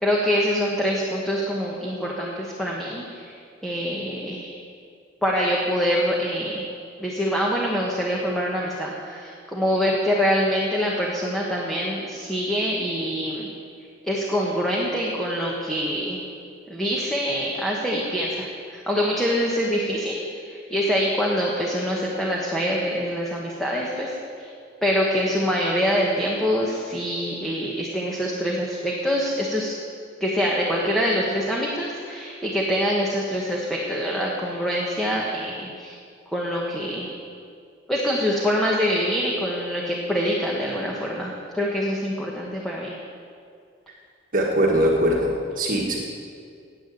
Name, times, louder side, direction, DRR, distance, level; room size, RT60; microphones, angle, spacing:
voice 1, 0.0-3.3 3.6-4.6 5.2-6.6 7.0-13.5 14.0-16.2 16.7-24.5 24.8-29.8 30.2-35.9 36.3-37.2 37.9-42.9, equal, ahead, -4 dB, 1.3 m, -25 dB
voice 2, 44.3-46.0, equal, 45° right, -2 dB, 1.5 m, -21 dB
10.5 x 8.6 x 8.3 m, 2.3 s
head